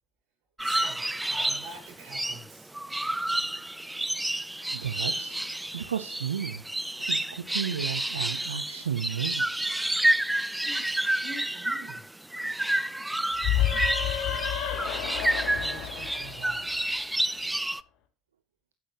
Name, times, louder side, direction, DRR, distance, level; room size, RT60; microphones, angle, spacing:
sound 1, 0.6-17.8, right 1 dB, 5° right, 0.5 m, -29 dB
voice 1, 0.6-2.7 10.0-10.2 10.5-12.1 13.5-14.5 15.2-16.9, right 3 dB, 65° right, 2 dB, 5.8 m, -47 dB
voice 2, 4.7-5.4 5.7-6.6 7.0-9.5, right 8 dB, 85° right, 11 dB, 0.7 m, -33 dB
sound 2, 13.4-17.0, left 11 dB, 55° left, 2.4 m, -30 dB
9.4 x 8.6 x 2.9 m, 0.30 s
hypercardioid pair, 70°, 0 cm